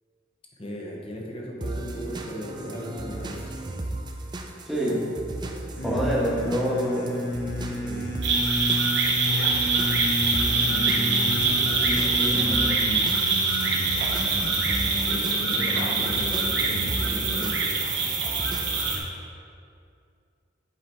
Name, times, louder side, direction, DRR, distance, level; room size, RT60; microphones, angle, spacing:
voice 1, 0.6-3.5 7.8-8.1 10.7-12.8 15.0-17.7, equal, 30° left, -2 dB, 1.0 m, -37 dB
sound 1, 1.6-19.1, right 2 dB, 25° right, 0.4 m, -36 dB
voice 2, 4.6-5.0 5.8-7.1, equal, ahead, -7 dB, 1.4 m, -26 dB
sound 2, 5.8-17.7, left 1 dB, 60° left, 0.8 m, -32 dB
sound 3, 8.2-19.0, right 3 dB, 65° right, 1.2 m, -24 dB
8.0 x 5.1 x 4.5 m, 2.4 s
head